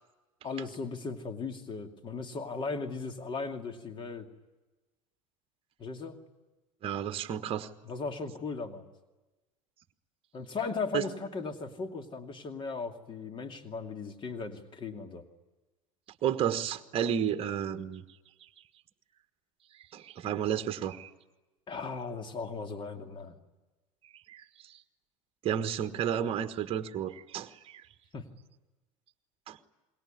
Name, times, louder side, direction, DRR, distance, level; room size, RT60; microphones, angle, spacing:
voice 1, 0.4-4.3 5.8-6.2 7.8-8.8 10.3-15.2 21.7-23.4 28.1-28.3, left 4 dB, 30° left, 6 dB, 2.5 m, -37 dB
voice 2, 6.8-7.7 10.9-11.1 16.2-18.0 19.9-21.1 24.3-24.7 25.4-27.8 29.5-29.6, right 9 dB, 35° right, 10 dB, 1.4 m, -32 dB
27.5 x 22.0 x 9.7 m, 1.1 s
figure-of-eight pair, 75°, 17 cm